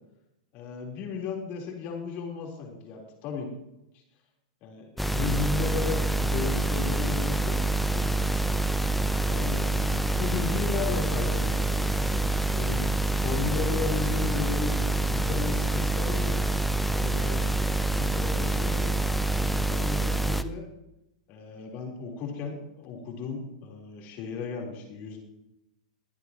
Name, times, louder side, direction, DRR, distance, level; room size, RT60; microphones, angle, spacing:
voice 1, 0.5-3.5 4.6-7.6 7.9-8.3 9.3-12.8 13.1-14.8 15.1-16.4 16.9-17.5 18.0-19.0 19.5-20.6 21.3-25.2, left 5 dB, 45° left, 0 dB, 3.8 m, -35 dB
sound 1, 5.0-20.4, right 2 dB, ahead, 0.5 m, -26 dB
23.0 x 8.2 x 3.0 m, 0.87 s
hypercardioid pair, 120°, 4 cm